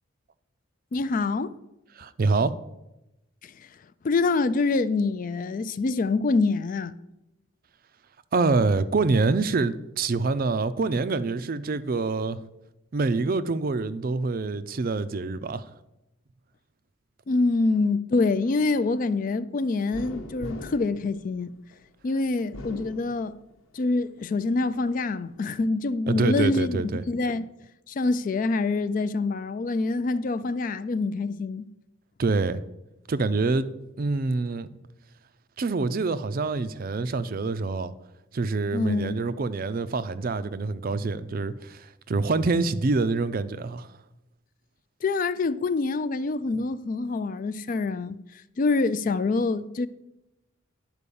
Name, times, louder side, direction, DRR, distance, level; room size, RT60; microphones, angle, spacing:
voice 1, 0.9-1.6 3.4-3.7 4.0-6.9 17.3-21.5 22.0-23.3 23.7-27.5 27.9-31.7 38.7-39.2 45.0-48.2 48.6-49.9, left 3 dB, 40° left, 0.3 m, -26 dB
voice 2, 2.0-2.5 8.3-12.4 12.9-15.7 26.1-27.0 32.2-32.6 33.1-33.7 34.0-34.7 35.6-37.9 38.3-43.9, right 3 dB, 45° right, 0.4 m, -26 dB
sound 1, 19.9-21.8 22.4-23.7 24.2-25.1, left 2 dB, 75° left, 1.0 m, -42 dB
9.8 x 4.6 x 6.9 m
head